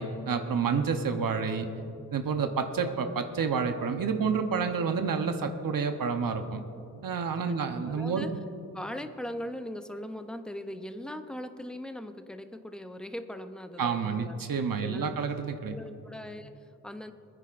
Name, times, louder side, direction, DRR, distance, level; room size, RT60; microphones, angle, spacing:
voice 1, 0.0-1.7 2.1-6.6 7.0-8.3 13.8-15.8, right 5 dB, 70° right, 6 dB, 0.9 m, -29 dB
voice 2, 7.5-8.3 8.7-14.4 14.8-15.2 15.6-17.1, left 1 dB, ahead, 8 dB, 0.6 m, -40 dB
25.0 x 10.0 x 2.5 m, 2.7 s
wide cardioid pair, 105°, 35 cm